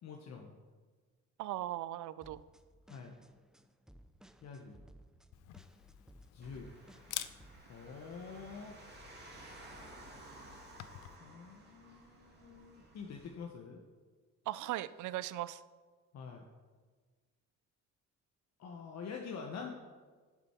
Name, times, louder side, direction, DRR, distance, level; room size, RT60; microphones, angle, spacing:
voice 1, 0.0-0.5 2.9-3.2 4.4-4.8 6.3-6.7 7.7-8.7 11.2-13.8 16.1-16.4 18.6-19.8, left 5 dB, 60° left, 2 dB, 1.0 m, -46 dB
voice 2, 1.4-2.4 14.5-15.6, right 14 dB, 80° right, 16 dB, 0.5 m, -38 dB
sound 1, 2.2-7.6, right 1 dB, ahead, 0.5 m, -60 dB
Camera, 5.3-11.2, left 14 dB, 80° left, 0.5 m, -49 dB
sound 2, 6.4-13.3, right 2 dB, 35° right, 2.3 m, -55 dB
11.0 x 6.8 x 4.4 m, 1.5 s
cardioid pair, 90°, 30 cm